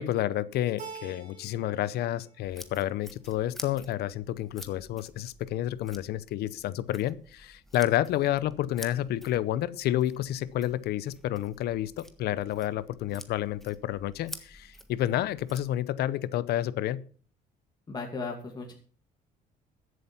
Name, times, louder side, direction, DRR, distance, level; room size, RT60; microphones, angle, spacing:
voice 1, 0.0-17.0, left 13 dB, 75° left, 18 dB, 0.7 m, -30 dB
Keyboard (musical), 0.8-1.9 2.2-3.0, right 5 dB, 45° right, 4.6 m, -45 dB
sound 1, 2.4-15.7, equal, ahead, 1.4 m, -50 dB
voice 2, 17.9-18.7, left 4 dB, 25° left, 1 dB, 2.4 m, -36 dB
14.0 x 8.0 x 5.7 m, 0.43 s
cardioid pair, 110°, 17 cm